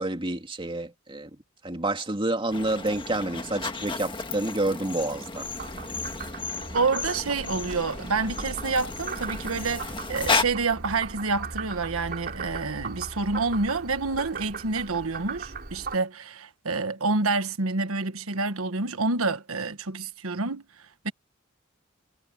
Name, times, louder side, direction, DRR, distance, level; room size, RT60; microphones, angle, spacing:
voice 1, 0.0-5.5, right 2 dB, 25° right, 2.5 m, -29 dB
sound 1, 2.5-10.4, left 4 dB, 25° left, 1.6 m, -33 dB
Frog, 5.3-16.0, right 4 dB, 50° right, 3.6 m, -38 dB
voice 2, 6.7-20.6 21.0-21.1, right 3 dB, 85° right, 1.4 m, -28 dB
head